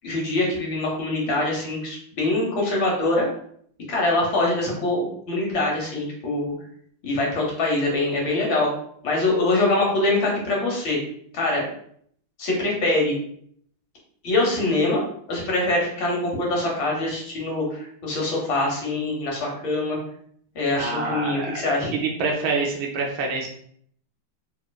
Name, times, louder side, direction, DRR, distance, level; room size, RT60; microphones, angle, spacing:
voice 1, 0.0-3.3 3.9-6.5 7.0-8.7 9.0-11.0 11.3-11.7 12.4-13.1 14.2-15.0 15.3-20.0 20.5-21.9, left 2 dB, 70° left, -2 dB, 1.7 m, -24 dB
voice 2, 20.7-23.5, right 4 dB, 75° right, 0 dB, 1.2 m, -27 dB
4.0 x 3.0 x 2.2 m, 0.64 s
omnidirectional pair, 2.3 m